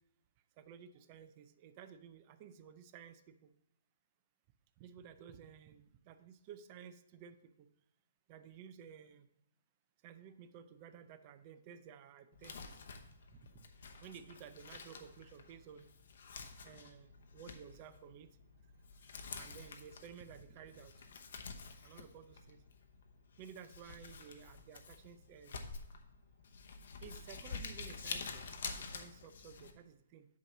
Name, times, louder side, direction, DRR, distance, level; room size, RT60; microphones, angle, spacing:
voice 1, 0.6-3.5 4.8-7.7 8.3-9.3 10.0-12.7 13.5-13.7 14.0-15.9 16.6-18.3 19.4-20.9 21.8-22.6 23.4-25.5 27.0-30.3, right 8 dB, 35° right, 11 dB, 0.5 m, -54 dB
Crumpling crinkling, 12.3-29.7, left 5 dB, 65° left, 0.8 m, -49 dB
8.2 x 3.0 x 5.9 m, 0.78 s
hypercardioid pair, 150°, 0 cm